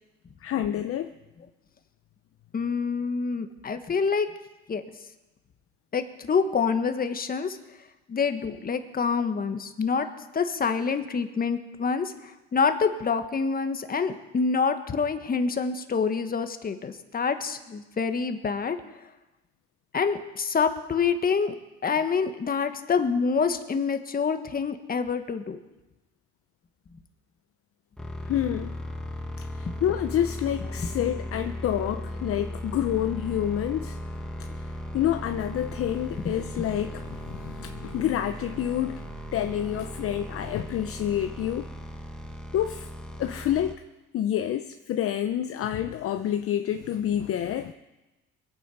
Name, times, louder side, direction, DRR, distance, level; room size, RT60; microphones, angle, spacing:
voice 1, 0.4-1.1 28.3-28.8 29.4-34.0 34.4-39.1 39.3-41.7 42.5-42.9 43.2-43.8 44.1-47.7, left 11 dB, 50° left, 8 dB, 0.7 m, -28 dB
voice 2, 2.5-4.3 4.7-4.8 5.9-7.6 8.1-10.1 10.3-18.8 19.9-21.5 21.8-25.6 26.9-27.0 29.7-29.8 30.8-30.9 36.3-36.7, left 5 dB, 30° left, 8 dB, 1.5 m, -27 dB
sound 1, 28.0-43.7, equal, 5° left, 1.8 m, -37 dB
22.5 x 8.8 x 5.4 m, 1.1 s
supercardioid pair, 90°, 30 cm